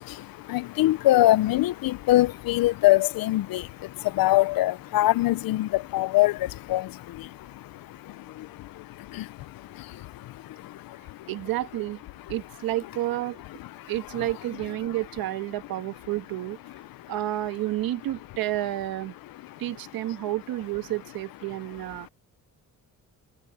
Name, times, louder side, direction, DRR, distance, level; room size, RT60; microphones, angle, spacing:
voice 1, 0.0-11.3 12.3-12.4 13.6-13.9 14.2-14.3 14.8-14.9 17.0-17.1 19.4-19.7 20.1-20.2, left 16 dB, 80° left, 0.7 m, -25 dB
voice 2, 11.3-12.0 12.3-13.4 13.9-16.6 17.1-19.1 19.6-22.1, right 15 dB, 90° right, 1.7 m, -30 dB
cardioid pair, 85°, 34 cm